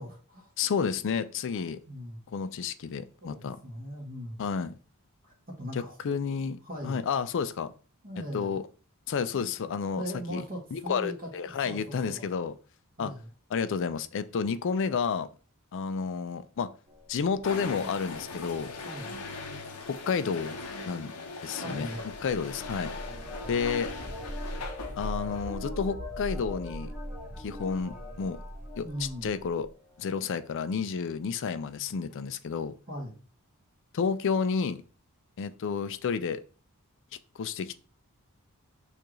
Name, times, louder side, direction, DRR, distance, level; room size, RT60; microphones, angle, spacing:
voice 1, 0.0-0.5 1.9-2.2 3.2-4.4 5.6-6.0 6.6-7.0 8.0-8.5 9.3-12.2 13.0-13.3 18.8-19.2 21.6-22.1 28.8-29.4 32.9-33.2, equal, 40° right, 1.3 m, -39 dB
voice 2, 0.6-1.8 2.3-3.6 4.4-4.7 5.7-7.7 8.3-8.6 9.1-10.0 10.3-10.4 10.7-12.5 13.0-13.1 13.5-15.3 15.7-16.7 17.1-18.7 19.9-20.6 20.9-21.1 21.4-21.9 22.2-22.9 23.5-23.9 25.0-26.9 27.4-28.4 28.8-29.7 30.0-32.7 33.9-34.8 35.4-36.4 37.4-37.8, left 6 dB, 60° left, 0.4 m, -31 dB
sound 1, 16.9-19.3 21.9-29.7 30.0-30.7, left 1 dB, 5° right, 1.0 m, -40 dB
sound 2, 17.4-25.6, left 3 dB, 90° left, 0.7 m, -40 dB
6.7 x 2.5 x 3.0 m
head